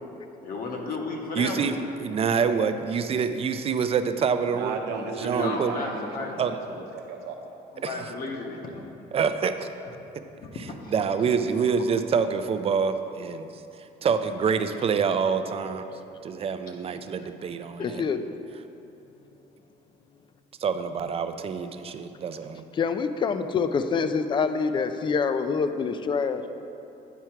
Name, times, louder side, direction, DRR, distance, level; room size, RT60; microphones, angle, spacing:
voice 1, 0.4-1.6 5.2-6.3 7.7-8.7 10.4-10.9 11.5-11.6, left 3 dB, 60° left, 0 dB, 1.1 m, -34 dB
voice 2, 1.4-4.8 5.1-5.7 6.4-6.5 7.8-7.9 9.1-9.7 10.9-13.5 14.0-15.8 16.2-18.0 20.6-22.6, right 6 dB, 35° right, 9 dB, 0.4 m, -26 dB
voice 3, 4.5-7.4 7.9-8.1, right 4 dB, 90° right, 3 dB, 0.8 m, -34 dB
voice 4, 17.8-18.2 22.7-26.4, left 5 dB, 30° left, 10 dB, 0.4 m, -26 dB
9.2 x 4.6 x 4.5 m, 2.9 s
cardioid pair, 110°, 17 cm